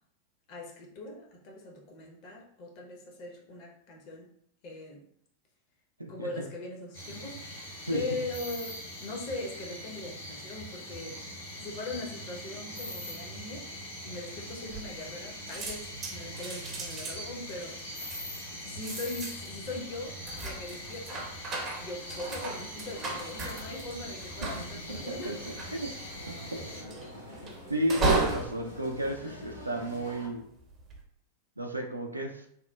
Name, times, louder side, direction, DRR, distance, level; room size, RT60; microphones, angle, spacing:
voice 1, 0.5-4.3 4.6-5.1 6.1-11.2 11.6-13.7 14.0-18.0 18.5-21.3 21.8-25.3, left 2 dB, 45° left, 0 dB, 0.6 m, -40 dB
voice 2, 6.0-6.5 7.9-8.0 24.9-26.0 26.3-26.6 27.7-30.5 31.6-32.5, right 1 dB, 85° right, 3 dB, 0.3 m, -33 dB
sound 1, 6.9-26.8, left 1 dB, 70° left, 1.5 m, -42 dB
sound 2, 14.7-15.2 15.5-30.0 30.6-31.0, right 3 dB, 25° right, 0.5 m, -36 dB
sound 3, 22.1-30.3, equal, 90° left, 0.9 m, -47 dB
2.8 x 2.0 x 2.2 m, 0.69 s
figure-of-eight pair, 90°, 0 cm